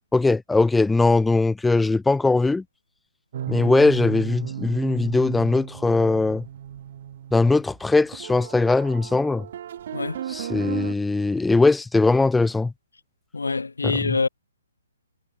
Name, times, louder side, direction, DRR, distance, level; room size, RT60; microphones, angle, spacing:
voice 1, 0.1-2.6 3.5-6.4 7.3-9.4 10.3-12.7 13.8-13.9, left 3 dB, 5° left, 0.8 m, -20 dB
sound 1, 3.3-10.9, right 10 dB, 45° right, 4.8 m, -35 dB
voice 2, 13.3-14.3, left 4 dB, 70° left, 5.9 m, -25 dB
figure-of-eight pair, 130°, 0 cm